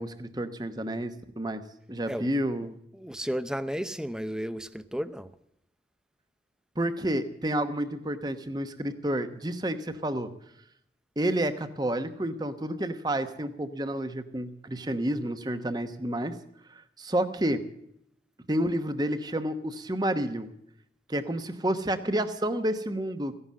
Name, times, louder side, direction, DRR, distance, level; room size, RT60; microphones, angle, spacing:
voice 1, 0.0-1.6 1.9-2.8 6.8-10.3 11.2-16.3 16.7-17.6 18.5-20.5 21.1-23.4, right 1 dB, 25° right, 10 dB, 1.0 m, -30 dB
voice 2, 2.9-5.3, equal, 5° right, 13 dB, 0.6 m, -33 dB
16.0 x 11.0 x 7.5 m, 0.75 s
head